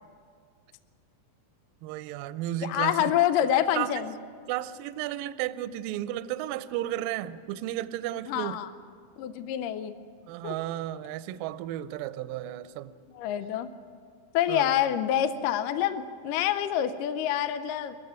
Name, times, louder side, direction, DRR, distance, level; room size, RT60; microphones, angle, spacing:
voice 1, 1.8-3.1 3.7-4.0 4.5-8.6 10.3-12.9 14.5-14.8, right 13 dB, 80° right, 13 dB, 2.2 m, -33 dB
voice 2, 2.6-4.1 8.3-8.7 9.2-9.9 10.4-10.5 13.1-13.7 14.3-18.0, left 11 dB, 75° left, 10 dB, 2.1 m, -27 dB
21.5 x 15.5 x 9.4 m, 2.1 s
omnidirectional pair, 4.4 m